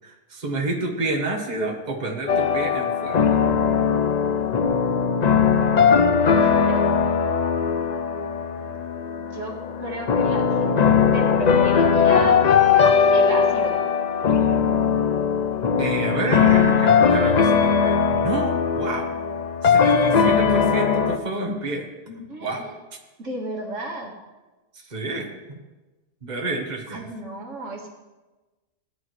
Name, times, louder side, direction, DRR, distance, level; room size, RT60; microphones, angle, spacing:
voice 1, 0.0-3.2 15.8-19.1 19.6-22.7 24.9-25.6 26.2-27.1, right 2 dB, 35° right, 1 dB, 1.6 m, -29 dB
sound 1, 2.3-21.2, left 6 dB, 45° left, 0.6 m, -19 dB
voice 2, 6.3-6.8 9.2-10.8 11.1-12.5 13.1-13.8 22.3-22.7 23.2-24.1 26.9-27.9, right 1 dB, 80° right, 0 dB, 2.2 m, -33 dB
18.5 x 10.5 x 3.3 m, 1.2 s
omnidirectional pair, 1.3 m